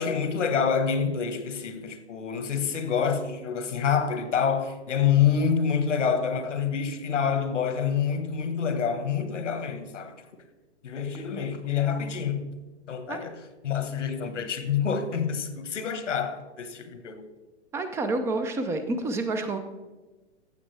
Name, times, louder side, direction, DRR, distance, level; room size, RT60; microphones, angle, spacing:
voice 1, 0.0-10.1 10.8-12.5 12.9-17.3, left 7 dB, 85° left, 1.3 m, -27 dB
voice 2, 17.7-19.6, right 2 dB, 10° right, 0.3 m, -28 dB
15.0 x 7.2 x 3.3 m
hypercardioid pair, 120°, 35 cm